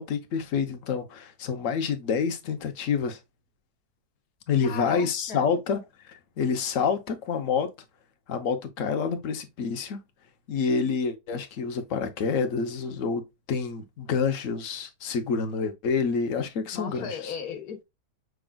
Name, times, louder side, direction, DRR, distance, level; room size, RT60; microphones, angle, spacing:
voice 1, 0.0-3.2 4.5-7.7 8.3-10.0 10.5-13.2 13.5-17.3, left 5 dB, 60° left, 1.1 m, -28 dB
voice 2, 4.6-5.5 16.7-17.8, left 6 dB, 75° left, 1.6 m, -36 dB
5.9 x 3.7 x 2.2 m
omnidirectional pair, 1.7 m